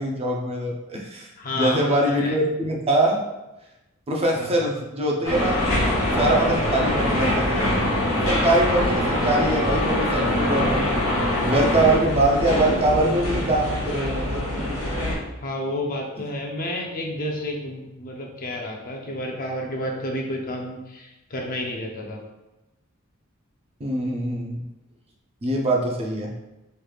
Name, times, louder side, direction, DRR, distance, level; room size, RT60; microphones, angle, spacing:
voice 1, 0.0-1.3 1.6-3.2 4.1-5.6 6.1-7.8 8.0-11.0 11.4-14.8 23.8-24.6 25.4-26.3, right 1 dB, 30° right, -1 dB, 0.5 m, -23 dB
voice 2, 1.4-2.4 4.3-4.5 6.6-6.8 8.8-9.0 12.0-12.1 15.4-22.2, left 1 dB, 40° left, 1 dB, 0.5 m, -31 dB
sound 1, 5.2-15.1, left 1 dB, 80° left, 1.1 m, -23 dB
3.2 x 3.2 x 2.3 m, 0.98 s
head